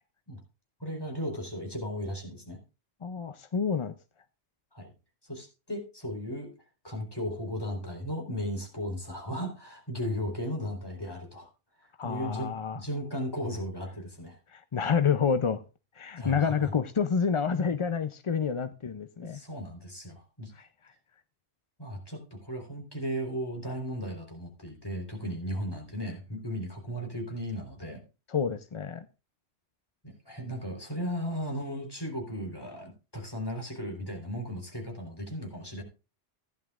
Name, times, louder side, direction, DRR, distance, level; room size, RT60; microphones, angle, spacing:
voice 1, 0.8-2.6 4.7-4.9 5.3-6.5 6.8-11.5 12.0-14.4 16.1-16.7 19.2-20.5 21.8-28.0 30.0-35.8, equal, 20° left, 3.9 m, -36 dB
voice 2, 3.0-4.0 12.0-12.8 14.5-15.6 16.0-19.4 20.5-20.7 28.3-29.1, left 6 dB, 40° left, 0.4 m, -28 dB
16.0 x 10.5 x 2.4 m
omnidirectional pair, 1.2 m